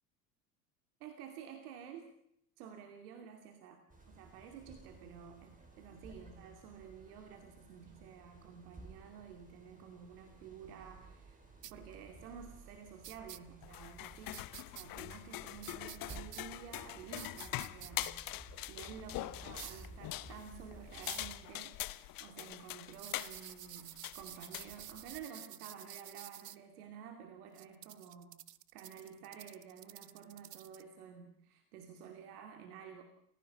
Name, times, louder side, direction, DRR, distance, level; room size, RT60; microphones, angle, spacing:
voice 1, 1.0-2.1 2.6-28.4 28.7-33.0, right 7 dB, 70° right, 6 dB, 2.7 m, -52 dB
sound 1, 3.9-21.4, right 2 dB, 15° right, 5.9 m, -56 dB
sound 2, 11.6-11.7 13.0-13.4 14.3-14.8 15.6-16.4 17.2-18.1 19.5-19.9 21.0-21.3 22.9-26.6 27.5-30.8, right 12 dB, 85° right, 0.8 m, -50 dB
sound 3, 13.6-25.3, left 17 dB, 45° left, 1.1 m, -44 dB
28.5 x 17.0 x 5.5 m, 0.73 s
hypercardioid pair, 75°, 47 cm